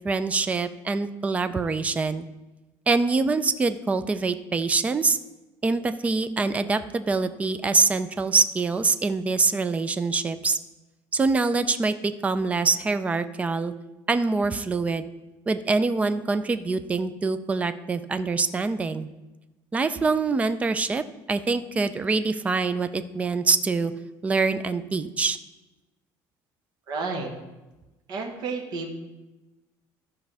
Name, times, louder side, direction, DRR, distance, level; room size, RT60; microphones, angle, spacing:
voice 1, 0.0-2.3 2.9-5.2 5.6-10.6 11.1-13.7 14.1-15.0 15.5-19.1 19.7-21.0 21.3-23.9 24.2-25.4, right 4 dB, 15° right, 11 dB, 0.4 m, -24 dB
voice 2, 26.9-27.3 28.1-28.9, right 4 dB, 55° right, 2 dB, 1.5 m, -31 dB
13.5 x 5.4 x 3.4 m, 1.1 s
cardioid pair, 150°, 8 cm